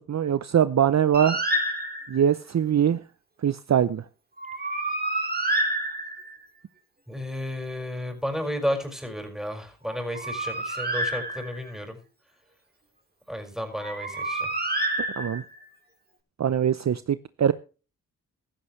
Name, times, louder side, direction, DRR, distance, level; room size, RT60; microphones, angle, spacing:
voice 1, 0.1-1.4 2.1-3.0 3.4-4.0 15.2-15.4 16.4-17.5, right 9 dB, 45° right, 0.7 m, -22 dB
Bird, 1.1-2.3 4.4-6.4 9.9-11.7 13.7-15.6, right 1 dB, 25° right, 3.7 m, -29 dB
voice 2, 7.1-12.0 13.3-14.5, equal, ahead, 5.6 m, -32 dB
15.0 x 13.0 x 3.2 m
supercardioid pair, 45°, 37 cm